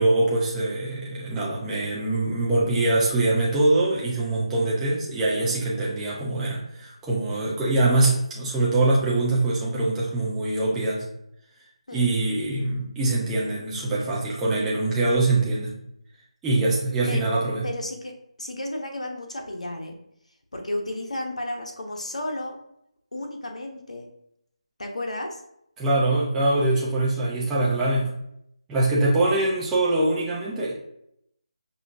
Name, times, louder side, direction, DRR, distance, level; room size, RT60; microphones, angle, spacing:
voice 1, 0.0-11.0 11.9-15.7 16.4-17.7 25.8-28.1 28.7-30.7, right 2 dB, 5° right, -6 dB, 0.5 m, -23 dB
voice 2, 17.6-19.9 20.5-22.6 23.1-24.1 24.8-25.4, left 1 dB, 85° left, 2 dB, 0.9 m, -33 dB
5.3 x 2.3 x 2.6 m, 0.75 s
figure-of-eight pair, 165°, 3 cm